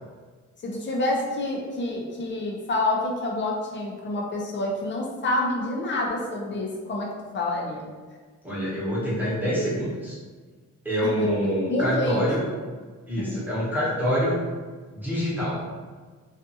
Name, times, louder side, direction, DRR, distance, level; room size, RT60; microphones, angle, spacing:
voice 1, 0.6-7.9 11.2-12.2, left 2 dB, 35° left, -2 dB, 0.6 m, -28 dB
voice 2, 8.4-10.2 10.8-12.4 13.1-14.4 14.9-15.6, equal, 5° right, -9 dB, 1.0 m, -26 dB
2.5 x 2.4 x 2.7 m, 1.5 s
wide cardioid pair, 135°, 31 cm